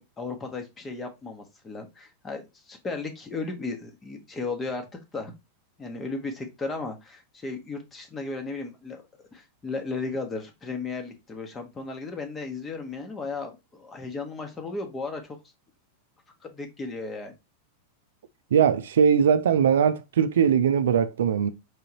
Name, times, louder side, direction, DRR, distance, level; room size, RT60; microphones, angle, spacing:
voice 1, 0.0-5.3 5.8-9.1 9.3-15.4 16.4-17.3, left 3 dB, 20° left, 1.1 m, -35 dB
voice 2, 18.5-21.5, right 7 dB, 60° right, 0.4 m, -20 dB
4.9 x 3.7 x 2.9 m
figure-of-eight pair, 90°, 0 cm